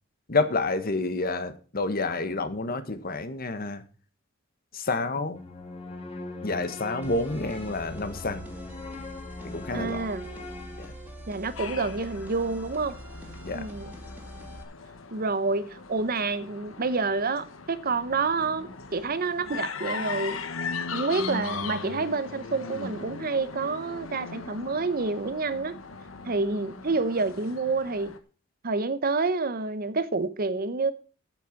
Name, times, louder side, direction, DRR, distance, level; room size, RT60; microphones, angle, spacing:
voice 1, 0.3-3.8 4.7-5.4 6.4-8.5 9.4-10.0 10.8-10.9 13.4-13.7, left 3 dB, 45° left, 1.2 m, -29 dB
sound 1, 5.3-11.4, left 2 dB, 30° left, 2.1 m, -40 dB
sound 2, 7.0-14.6, equal, 10° right, 2.5 m, -43 dB
voice 2, 9.7-10.3 11.3-13.0 13.5-14.0 15.1-20.4 20.9-25.8 26.2-28.1 28.6-30.9, right 3 dB, 45° right, 0.8 m, -28 dB
sound 3, 11.6-28.2, left 4 dB, 80° left, 1.3 m, -39 dB
9.0 x 7.9 x 7.1 m
head